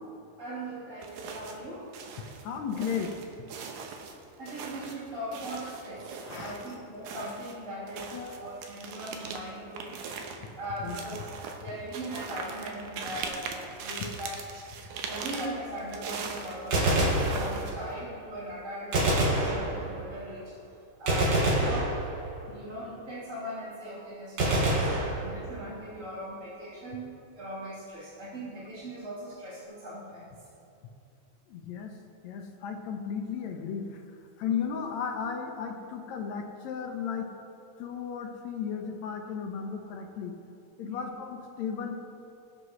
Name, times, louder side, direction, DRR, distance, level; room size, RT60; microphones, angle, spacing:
voice 1, 0.4-1.9 4.4-10.0 10.6-11.2 11.6-14.4 15.1-20.5 21.0-22.0 22.5-30.5 40.8-41.1, right 1 dB, 25° right, -11 dB, 3.3 m, -40 dB
sound 1, 1.0-1.7 1.9-6.8 7.0-18.0, right 5 dB, 85° right, 2.4 m, -40 dB
voice 2, 2.4-3.1 6.3-6.6 8.1-8.5 10.8-11.0 13.4-13.6 14.0-14.1 24.8-25.1 31.5-31.9 32.2-34.0 34.4-37.3 37.8-40.3 40.8-42.0, left 7 dB, 70° left, 4 dB, 1.9 m, -35 dB
Gunshot gunfire, 16.6-17.9 18.9-20.2 21.1-22.5 24.4-25.7, right 1 dB, 60° right, 3.1 m, -26 dB
21.5 x 7.9 x 3.2 m, 2.6 s
omnidirectional pair, 3.5 m